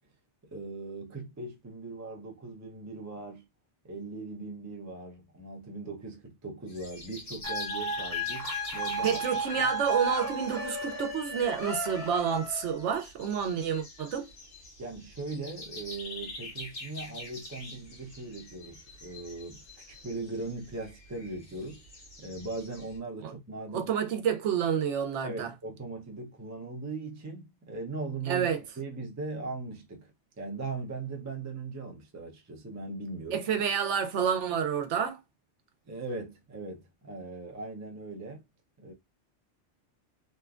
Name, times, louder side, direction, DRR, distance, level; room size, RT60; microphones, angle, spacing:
voice 1, 0.5-3.4 3.8-9.7 14.8-19.6 19.9-21.8 22.2-23.9 25.2-28.5 28.8-30.1 30.4-33.4 35.9-38.4 38.8-38.9, right 3 dB, 20° right, 0.4 m, -39 dB
sound 1, 6.7-23.0, left 2 dB, 75° left, 1.3 m, -45 dB
sound 2, 7.4-12.9, right 1 dB, 40° right, 1.1 m, -34 dB
voice 2, 9.0-14.3 23.2-23.3 23.7-25.5 28.3-28.6 33.3-35.2, right 7 dB, 80° right, 0.9 m, -29 dB
3.0 x 2.2 x 2.4 m
omnidirectional pair, 1.2 m